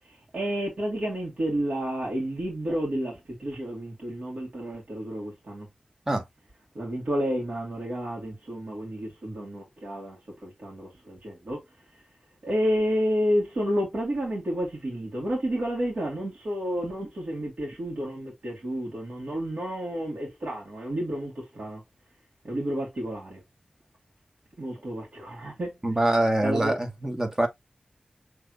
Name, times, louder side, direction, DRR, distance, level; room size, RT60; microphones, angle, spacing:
voice 1, 0.0-5.7 6.7-11.6 11.9-12.0 12.4-21.8 22.4-23.4 24.6-25.8 26.4-26.8, equal, 80° right, 2.0 m, -30 dB
voice 2, 25.8-27.5, right 1 dB, 20° right, 1.4 m, -24 dB
6.2 x 3.3 x 2.5 m
wide cardioid pair, 75°, 2 cm